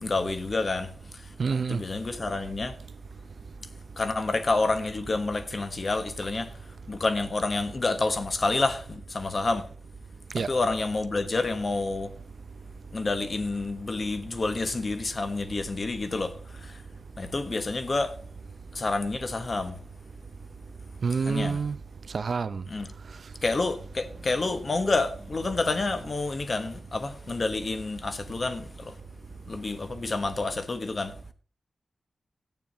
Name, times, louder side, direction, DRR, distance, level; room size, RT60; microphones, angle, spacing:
voice 1, 0.0-0.9 1.7-2.7 4.0-6.5 6.9-9.7 10.4-12.1 12.9-16.3 16.6-16.8 17.2-18.1 18.7-19.8 21.3-21.6 22.7-22.9 23.4-28.9 29.5-31.1, left 3 dB, 35° left, 1.3 m, -28 dB
voice 2, 1.4-1.8 10.3-10.5 21.0-21.8 22.1-22.6, right 5 dB, 50° right, 0.8 m, -27 dB
14.5 x 9.3 x 4.0 m
wide cardioid pair, 180°, 0 cm